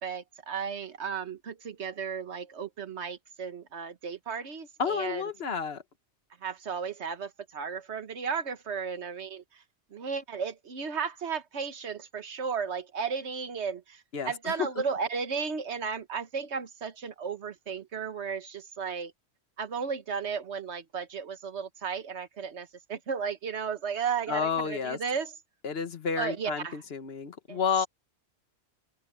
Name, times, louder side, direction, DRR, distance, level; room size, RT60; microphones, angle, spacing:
voice 1, 0.0-5.3 6.4-9.6 9.9-19.1 19.6-25.3 26.2-26.8 27.5-27.9, right 6 dB, 75° right, 1.5 m, -34 dB
voice 2, 4.8-5.8 14.1-14.7 24.3-25.0 25.6-27.9, left 6 dB, 60° left, 1.4 m, -30 dB
open air
omnidirectional pair, 1.2 m